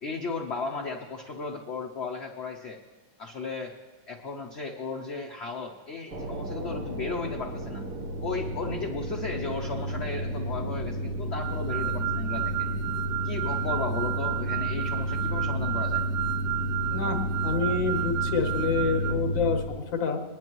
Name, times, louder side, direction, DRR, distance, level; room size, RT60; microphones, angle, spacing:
voice 1, 0.0-2.8 3.2-3.7 4.1-7.8 8.2-12.7 13.2-16.0, left 4 dB, 50° left, 2 dB, 0.8 m, -35 dB
sound 1, 6.1-19.6, equal, 60° right, 1.5 m, -31 dB
sound 2, 11.4-19.1, right 15 dB, 90° right, 1.3 m, -32 dB
voice 2, 17.4-20.2, left 4 dB, 90° left, 3 dB, 2.0 m, -27 dB
20.5 x 10.5 x 3.0 m, 1.4 s
omnidirectional pair, 2.0 m